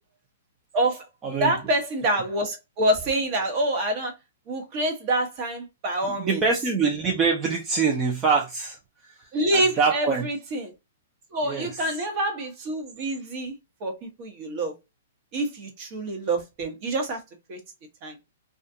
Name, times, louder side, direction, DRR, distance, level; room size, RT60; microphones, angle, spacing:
voice 1, 0.7-1.1 1.4-4.1 4.5-6.4 9.3-10.7 11.3-13.5 13.8-14.7 15.3-17.2 17.5-17.6 18.0-18.2, right 1 dB, 40° right, 0.9 m, -26 dB
voice 2, 6.0-10.3 11.4-11.8, right 5 dB, 25° right, 0.5 m, -25 dB
2.4 x 2.3 x 2.6 m
hypercardioid pair, 135°, 0 cm